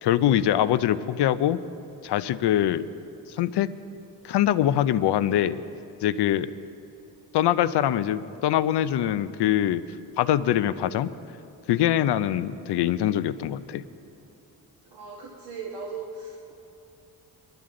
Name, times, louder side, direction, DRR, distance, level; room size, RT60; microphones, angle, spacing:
voice 1, 0.0-1.6 2.0-2.9 3.4-3.7 4.2-5.6 6.0-6.5 7.3-9.8 10.2-11.1 11.7-13.8, left 11 dB, 80° left, 13 dB, 0.6 m, -23 dB
voice 2, 14.9-16.5, right 4 dB, 75° right, -3 dB, 1.8 m, -38 dB
21.5 x 12.0 x 3.8 m, 2.7 s
cardioid pair, 115°, 40 cm